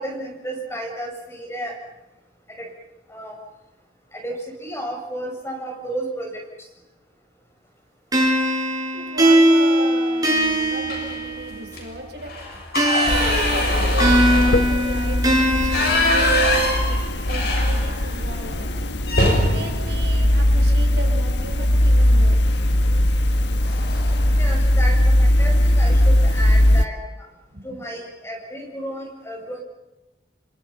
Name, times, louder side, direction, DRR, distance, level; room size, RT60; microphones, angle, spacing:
voice 1, 0.0-1.8 2.6-2.7 3.1-3.3 4.1-6.4 18.7-18.8 19.1-19.2 24.3-27.3 27.6-29.6, right 1 dB, 15° left, 1 dB, 7.4 m, -32 dB
sound 1, 8.1-11.7 12.8-16.8, equal, 20° right, 6.1 m, -20 dB
voice 2, 8.9-12.3 12.9-18.7 19.3-22.4 27.5-27.8, right 1 dB, 70° right, 3 dB, 5.2 m, -35 dB
sound 2, 10.8-11.3 11.7-11.8 12.2-18.2 18.5-18.6 19.0-21.2 22.5-22.8 23.2-23.3 23.6-24.2, left 1 dB, 60° left, 7.4 m, -24 dB
sound 3, 13.1-26.8, left 1 dB, 75° left, 1.4 m, -19 dB
30.0 x 26.0 x 5.7 m, 1.0 s
head